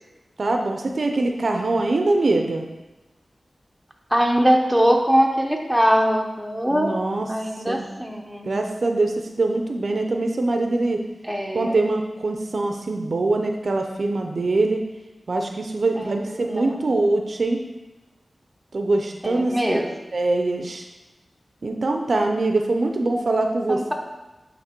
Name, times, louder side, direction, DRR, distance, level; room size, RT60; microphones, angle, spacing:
voice 1, 0.4-2.6 6.7-7.3 7.7-7.8 8.4-11.0 11.5-14.8 15.3-17.6 18.7-19.5 20.1-20.8 21.6-23.9, right 2 dB, 65° right, 4 dB, 0.5 m, -23 dB
voice 2, 4.1-6.9 7.3-8.5 11.3-11.8 16.0-16.7 19.2-19.9 23.7-23.9, equal, 5° right, 1 dB, 0.8 m, -22 dB
8.6 x 3.1 x 4.4 m, 1.1 s
wide cardioid pair, 80°, 0 cm